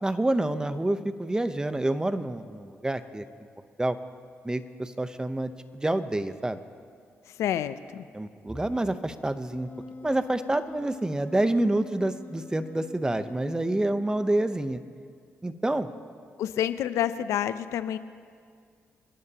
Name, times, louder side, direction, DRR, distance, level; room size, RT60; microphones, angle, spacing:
voice 1, 0.0-3.2 3.8-4.0 4.4-6.6 8.1-9.7 10.0-14.8 15.4-15.9, right 1 dB, 15° right, 11 dB, 0.8 m, -28 dB
voice 2, 7.4-8.0 16.4-18.0, left 10 dB, 85° left, 13 dB, 0.5 m, -28 dB
Wind instrument woodwind instrument, 9.5-14.9, left 4 dB, 50° left, 1.0 m, -45 dB
28.0 x 11.0 x 2.9 m, 2.1 s
cardioid pair, 65°, 5 cm